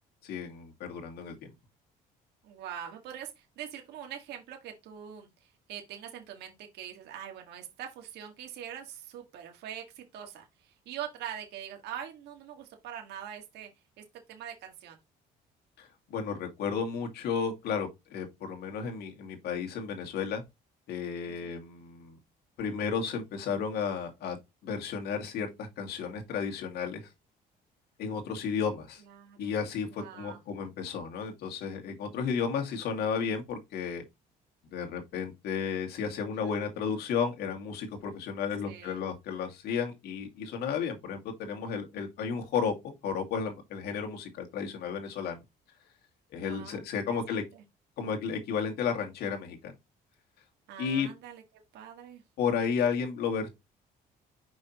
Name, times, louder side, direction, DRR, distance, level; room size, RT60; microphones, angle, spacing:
voice 1, 0.2-1.4 15.8-20.4 20.9-22.2 22.6-24.4 24.6-27.0 28.0-29.0 29.4-34.0 34.7-45.4 46.3-47.4 48.0-49.7 50.8-51.1 52.4-53.5, left 6 dB, 75° left, 2.3 m, -33 dB
voice 2, 2.4-13.7 14.3-15.0 21.3-21.6 29.0-29.5 29.9-30.4 36.4-36.5 38.7-39.0 46.4-46.8 47.1-47.6 50.7-51.4 51.7-52.2, right 9 dB, 80° right, 1.9 m, -43 dB
6.2 x 5.5 x 3.0 m
cardioid pair, 110°, 17 cm